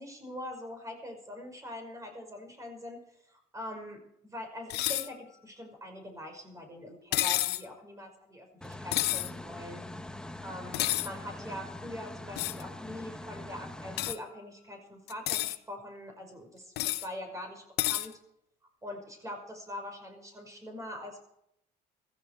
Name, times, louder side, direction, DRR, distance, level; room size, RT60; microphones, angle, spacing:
voice 1, 0.0-3.0 3.3-9.8 10.4-18.2 18.8-21.2, left 1 dB, 20° right, 4 dB, 5.6 m, -43 dB
sound 1, 4.7-5.1 7.1-7.6 8.9-9.3 10.7-11.1 12.4-12.6 14.0-14.2 15.1-15.6 16.8-17.1 17.8-18.1, left 15 dB, 75° left, 0.8 m, -29 dB
sound 2, 8.6-14.1, left 1 dB, 5° left, 1.0 m, -43 dB
15.5 x 14.5 x 4.7 m, 0.75 s
cardioid pair, 110°, 17 cm